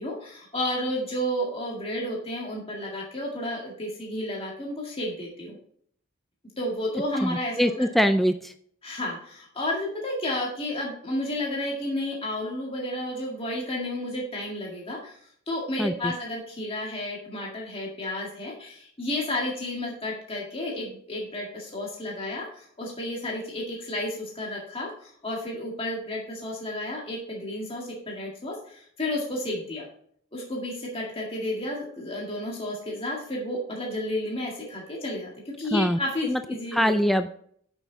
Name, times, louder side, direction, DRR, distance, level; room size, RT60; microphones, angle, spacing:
voice 1, 0.0-5.6 6.6-7.7 8.8-15.2 15.5-29.9 30.3-36.9, left 1 dB, 30° left, -3 dB, 2.0 m, -32 dB
voice 2, 7.2-8.5 15.8-16.1 35.7-36.4 36.7-37.3, equal, ahead, 8 dB, 0.3 m, -23 dB
9.0 x 6.4 x 4.0 m, 0.62 s
head